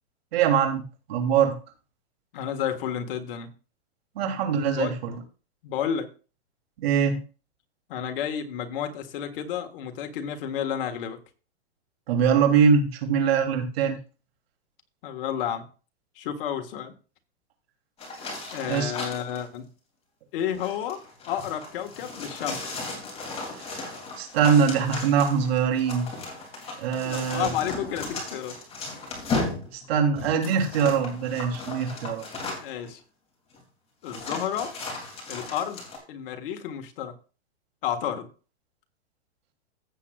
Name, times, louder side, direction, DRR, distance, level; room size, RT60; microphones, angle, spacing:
voice 1, 0.3-0.8 1.1-1.5 4.1-5.1 6.8-7.2 12.1-14.0 18.7-18.9 23.5-23.9 24.2-26.1 26.8-27.5 29.7-32.2, right 7 dB, 60° right, 3.1 m, -23 dB
voice 2, 2.3-3.5 4.8-4.9 5.6-6.1 7.9-11.2 15.0-15.6 16.1-16.9 18.5-19.6 20.3-21.0 21.3-22.6 27.0-28.6 32.6-33.0 34.0-34.8 35.3-35.8 36.1-37.1 37.8-38.3, left 9 dB, 55° left, 1.7 m, -31 dB
sound 1, 18.0-19.4 20.4-32.9 33.5-33.6 34.0-36.0, left 3 dB, 20° left, 2.9 m, -36 dB
15.5 x 7.6 x 2.4 m
hypercardioid pair, 150°, 33 cm